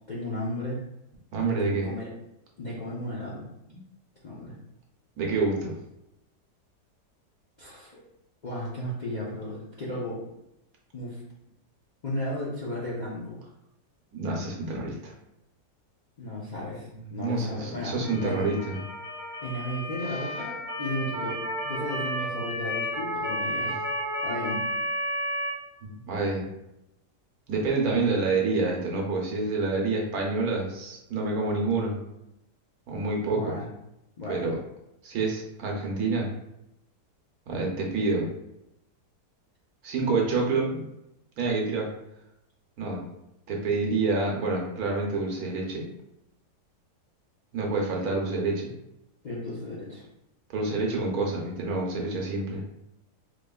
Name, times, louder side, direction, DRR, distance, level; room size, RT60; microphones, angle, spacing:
voice 1, 0.1-0.8 1.6-2.1 2.6-3.5 4.2-4.5 7.6-8.0 8.4-10.2 10.9-11.2 12.0-13.4 16.2-18.5 19.4-23.7 24.2-24.6 33.3-33.7 34.2-34.5 48.0-48.1 49.2-50.1, left 1 dB, 45° left, -6 dB, 0.5 m, -34 dB
voice 2, 1.3-1.9 5.2-5.7 14.1-15.1 17.1-18.8 23.6-23.7 25.8-26.4 27.5-32.0 32.9-33.5 34.3-34.6 35.0-36.3 37.5-38.3 39.8-40.8 41.4-41.9 42.8-43.0 43.5-45.9 47.5-48.7 50.5-52.6, right 3 dB, 65° right, -1 dB, 1.2 m, -27 dB
Motor vehicle (road) / Siren, 18.0-25.5, equal, 90° left, 1.6 m, -32 dB
4.6 x 3.0 x 2.3 m, 0.86 s
omnidirectional pair, 1.8 m